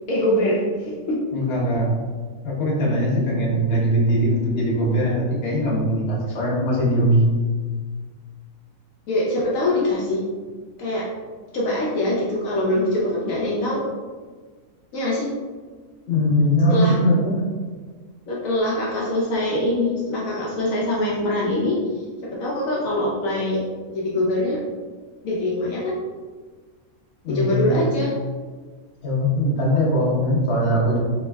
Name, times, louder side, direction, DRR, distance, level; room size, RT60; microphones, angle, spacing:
voice 1, 0.1-1.2 9.1-10.2 10.8-11.1 11.5-13.8 14.9-15.3 16.7-17.0 18.3-21.8 22.2-23.6 23.9-24.6 25.2-26.0 27.3-28.1, left 1 dB, 75° left, -5 dB, 1.0 m, -23 dB
voice 2, 1.3-1.9 2.4-7.2 16.1-17.5 27.2-27.9 29.0-31.0, equal, 50° left, -5 dB, 1.1 m, -21 dB
4.3 x 3.0 x 2.2 m, 1.5 s
omnidirectional pair, 1.5 m